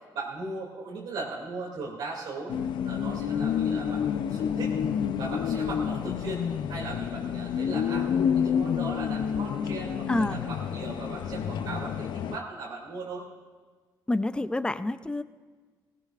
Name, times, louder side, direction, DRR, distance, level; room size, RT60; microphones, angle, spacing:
voice 1, 0.1-4.0 4.3-4.8 5.2-6.4 6.7-8.1 8.3-13.2, right 3 dB, 85° right, -5 dB, 2.7 m, -38 dB
sound 1, 2.5-12.4, left 8 dB, 75° left, 0.6 m, -29 dB
voice 2, 10.1-10.4 14.1-15.2, left 2 dB, 10° left, 12 dB, 0.5 m, -28 dB
19.0 x 18.0 x 2.5 m, 1.4 s
cardioid pair, 90°, 8 cm